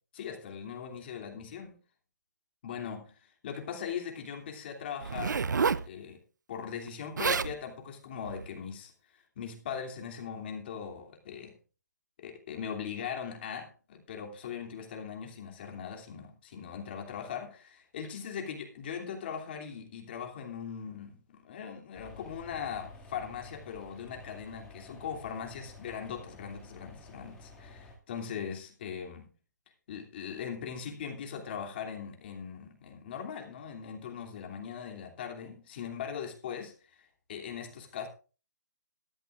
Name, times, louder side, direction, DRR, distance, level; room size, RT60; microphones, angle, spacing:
voice 1, 0.1-1.8 2.6-5.4 5.9-6.2 6.5-11.5 12.2-17.6 17.9-29.3 29.9-38.1, left 7 dB, 35° left, 2.8 m, -40 dB
Zipper (clothing), 5.0-5.9 6.9-7.0 7.2-7.5 8.2-8.5, right 5 dB, 85° right, 0.6 m, -29 dB
sound 1, 21.9-27.9, left 3 dB, 5° left, 2.2 m, -51 dB
18.5 x 13.0 x 2.5 m
hypercardioid pair, 165°, 10 cm